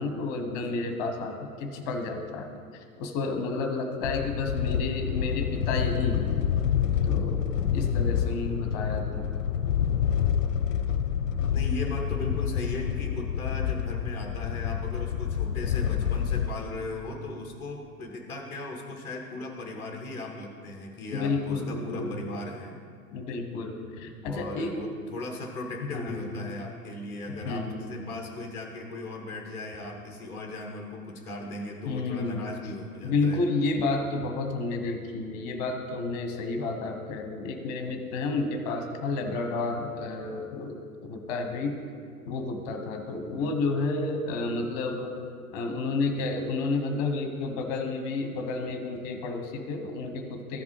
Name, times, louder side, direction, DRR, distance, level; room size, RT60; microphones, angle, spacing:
voice 1, 0.0-6.3 7.0-7.4 7.7-9.3 21.1-22.2 23.1-24.8 25.9-26.5 27.4-28.0 31.8-32.5 33.0-40.7 41.0-41.7 42.3-45.1 45.5-50.6, left 3 dB, 30° left, 5 dB, 0.9 m, -31 dB
sound 1, 4.0-16.5, left 8 dB, 60° left, 0.5 m, -28 dB
voice 2, 11.5-22.8 24.2-33.5 43.2-43.5, left 2 dB, 5° left, -1 dB, 0.5 m, -38 dB
14.5 x 5.2 x 3.2 m, 2.2 s
figure-of-eight pair, 105°, 45 cm